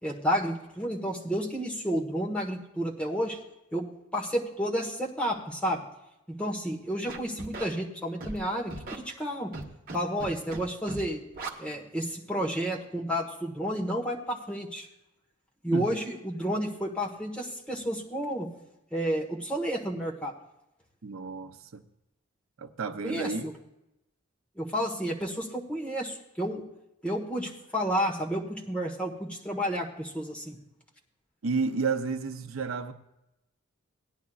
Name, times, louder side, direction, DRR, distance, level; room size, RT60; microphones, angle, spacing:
voice 1, 0.0-3.4 3.7-3.8 4.1-5.8 6.3-9.5 9.9-11.2 11.6-14.9 15.6-18.5 18.9-20.3 23.0-23.5 24.6-26.6 27.0-30.6, equal, 5° left, -2 dB, 1.3 m, -31 dB
Scratching (performance technique), 7.1-7.6 8.2-8.4 8.7-9.0 9.5-10.0 10.2-10.6 10.9-11.0 11.3-11.5, right 2 dB, 45° right, 1.2 m, -37 dB
voice 2, 21.0-21.8 22.6-23.4 31.4-32.9, right 4 dB, 75° right, 9 dB, 0.6 m, -31 dB
17.5 x 10.5 x 2.4 m, 0.89 s
head